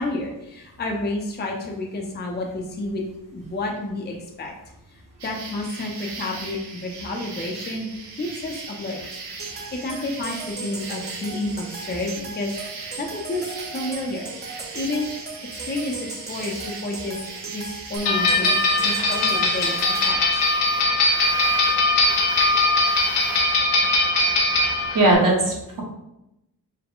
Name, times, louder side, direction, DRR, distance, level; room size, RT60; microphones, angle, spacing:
voice 1, 0.0-3.0 3.3-4.5 5.2-7.9 8.2-14.3 14.7-15.1 15.5-19.7 20.0-20.4, left 2 dB, 25° left, 0 dB, 0.6 m, -30 dB
sound 1, 5.2-23.6, right 4 dB, 70° right, 1.1 m, -38 dB
sound 2, 9.4-20.1, right 4 dB, 25° right, 0.7 m, -38 dB
sound 3, 18.0-25.1, left 2 dB, 80° left, 0.9 m, -20 dB
voice 2, 24.9-25.8, right 2 dB, 50° right, -2 dB, 1.2 m, -18 dB
4.6 x 2.2 x 3.6 m, 0.89 s
cardioid pair, 110°, 41 cm